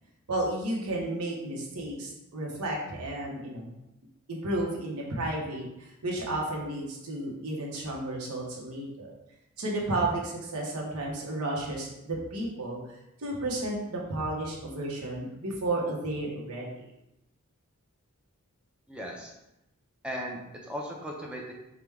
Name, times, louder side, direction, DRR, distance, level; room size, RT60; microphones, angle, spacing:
voice 1, 0.3-3.8 4.3-5.6 6.0-9.1 9.6-16.7, right 1 dB, 85° right, -2 dB, 1.0 m, -32 dB
voice 2, 18.9-19.3 20.0-21.5, equal, 5° right, -1 dB, 0.5 m, -37 dB
4.8 x 2.2 x 3.5 m, 0.88 s
head